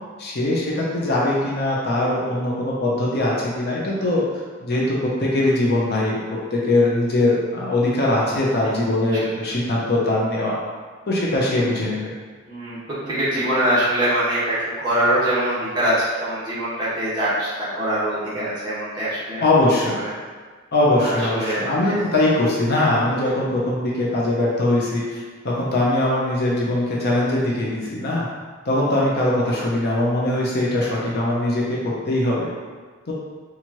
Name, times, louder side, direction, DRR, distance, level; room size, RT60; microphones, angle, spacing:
voice 1, 0.2-6.2 6.5-10.6 11.1-12.1 19.4-20.0 20.7-28.3 28.7-32.5 33.1-33.2, left 1 dB, 50° left, -4 dB, 0.7 m, -21 dB
voice 2, 12.4-19.4 20.0-20.1 21.0-22.1 28.9-29.1 29.5-29.6, right 1 dB, 20° right, -11 dB, 1.3 m, -24 dB
4.4 x 2.5 x 2.9 m, 1.5 s
head